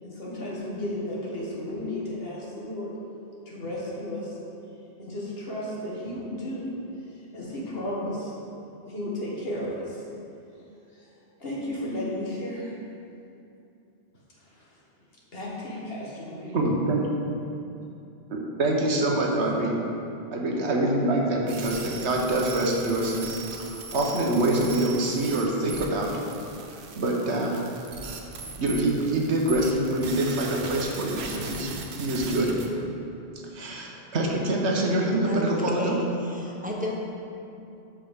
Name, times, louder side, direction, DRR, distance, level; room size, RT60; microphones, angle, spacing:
voice 1, 0.0-2.9 3.5-4.4 5.0-6.7 7.3-8.3 8.8-10.0 10.9-11.1 11.4-12.7 14.4-14.7 15.3-16.6, left 1 dB, 60° left, -5 dB, 1.8 m, -33 dB
voice 2, 16.5-17.0 18.3-19.7 20.3-23.3 23.7-26.1 27.0-27.6 28.6-32.6 33.5-36.0, right 1 dB, 85° right, -1 dB, 1.4 m, -25 dB
sound 1, 21.5-32.7, right 4 dB, 70° right, 1.0 m, -39 dB
voice 3, 35.2-37.0, equal, 10° right, -3 dB, 0.8 m, -32 dB
12.5 x 4.9 x 3.6 m, 2.7 s
omnidirectional pair, 1.1 m